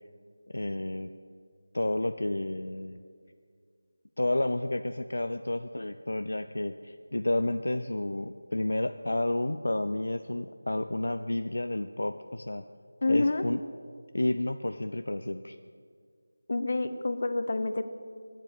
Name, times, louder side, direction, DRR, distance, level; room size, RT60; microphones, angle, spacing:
voice 1, 0.5-1.1 1.7-3.0 4.2-12.7 13.1-13.6 14.1-15.6, left 1 dB, 70° left, 9 dB, 0.5 m, -31 dB
voice 2, 13.0-13.4 16.5-17.8, left 2 dB, 45° left, 10 dB, 0.8 m, -27 dB
9.1 x 7.6 x 9.0 m, 2.1 s
figure-of-eight pair, 170°, 0 cm